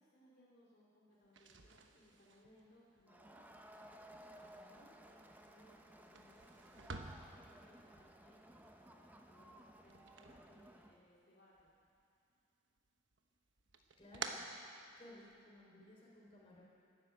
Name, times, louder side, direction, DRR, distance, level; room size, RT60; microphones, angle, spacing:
voice 1, 0.0-3.5 3.8-7.0 7.3-11.7, left 1 dB, 50° left, -6 dB, 2.5 m, -67 dB
sound 1, 1.2-11.2 11.5-12.4 12.8-15.4, right 4 dB, 65° right, 1.1 m, -53 dB
Crowd, 3.1-11.0, right 1 dB, 10° right, 0.7 m, -59 dB
voice 2, 14.0-14.5 15.0-16.6, left 1 dB, 30° left, -3 dB, 3.6 m, -58 dB
12.5 x 11.5 x 8.9 m, 2.6 s
head